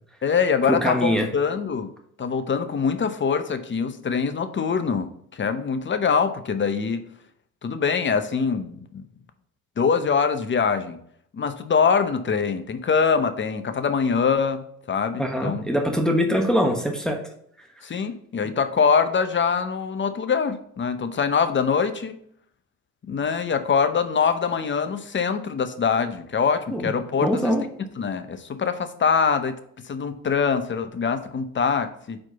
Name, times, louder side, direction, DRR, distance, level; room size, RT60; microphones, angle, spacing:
voice 1, 0.2-1.9 2.2-7.0 7.6-9.0 9.8-11.0 11.3-15.6 17.8-22.2 23.1-27.5 28.0-29.6 29.8-32.2, left 6 dB, 25° left, 10 dB, 0.7 m, -24 dB
voice 2, 0.8-1.3 15.2-17.2 26.7-26.9 27.2-27.6, equal, ahead, 2 dB, 1.2 m, -23 dB
4.4 x 4.4 x 5.6 m, 0.66 s
hypercardioid pair, 60°, 42 cm